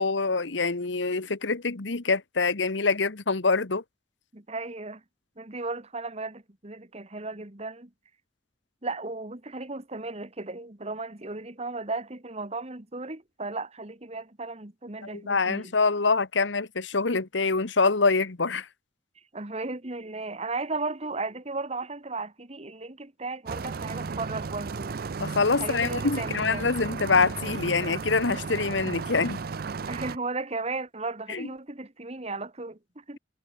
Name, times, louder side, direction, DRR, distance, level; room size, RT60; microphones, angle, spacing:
voice 1, 0.0-3.8 15.0-18.7 25.2-29.4 31.3-31.5, left 4 dB, 80° left, 1.3 m, -25 dB
voice 2, 4.3-5.0 5.4-7.9 8.8-15.7 19.3-25.0 25.6-26.7 29.9-33.2, right 3 dB, 35° right, 2.0 m, -35 dB
sound 1, 23.5-30.2, right 4 dB, 55° right, 0.5 m, -34 dB
head